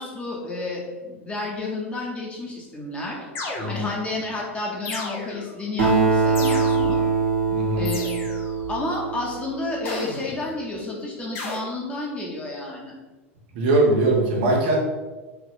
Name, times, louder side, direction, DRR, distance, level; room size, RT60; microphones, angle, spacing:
voice 1, 0.0-3.3 3.7-7.0 7.8-8.1 8.7-12.9, left 2 dB, 15° left, -3 dB, 1.3 m, -31 dB
sound 1, 3.4-4.1 4.9-5.6 6.4-7.1 7.9-8.6 9.9-10.5 11.4-11.6, left 3 dB, 35° left, 0.9 m, -34 dB
Acoustic guitar, 5.8-9.6, right 4 dB, 70° right, 1.4 m, -22 dB
voice 2, 7.5-7.9 13.5-14.8, right 2 dB, 50° right, -1 dB, 0.9 m, -21 dB
4.9 x 3.0 x 3.2 m, 1.2 s
figure-of-eight pair, 85°, 7 cm